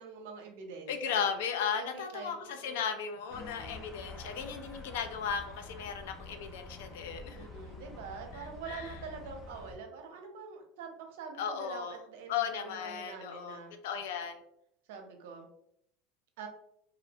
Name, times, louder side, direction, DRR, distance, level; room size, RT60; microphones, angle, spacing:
voice 1, 0.0-1.2 1.7-2.8 7.3-13.7 14.9-15.5 16.4-16.5, right 5 dB, 75° right, 4 dB, 0.6 m, -45 dB
voice 2, 0.9-7.5 8.3-8.9 11.4-12.0 12.3-14.4, left 7 dB, 80° left, 7 dB, 0.4 m, -36 dB
sound 1, 3.3-9.8, left 2 dB, 15° left, 0.4 m, -47 dB
2.5 x 2.0 x 2.7 m, 0.73 s
supercardioid pair, 170°, 0 cm